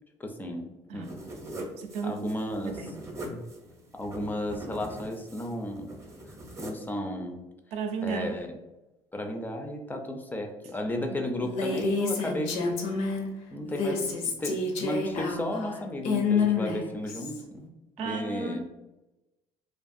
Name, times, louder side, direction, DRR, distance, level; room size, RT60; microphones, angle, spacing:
voice 1, 0.2-0.7 0.9-1.2 2.0-2.9 3.3-3.4 3.9-5.9 6.6-7.4 8.0-8.6 9.1-12.8 13.5-14.1 14.4-18.7, left 1 dB, 15° left, 0.3 m, -34 dB
sound 1, 1.0-6.9, right 1 dB, 25° right, 0.6 m, -42 dB
voice 2, 1.8-2.3 2.6-3.0 7.7-8.4 11.1-11.2 18.0-18.7, right 5 dB, 65° right, 0.4 m, -34 dB
Female speech woman speaking, 11.4-13.3 13.6-17.4, left 4 dB, 80° left, 0.6 m, -28 dB
2.4 x 2.4 x 2.5 m
cardioid pair, 110°, 12 cm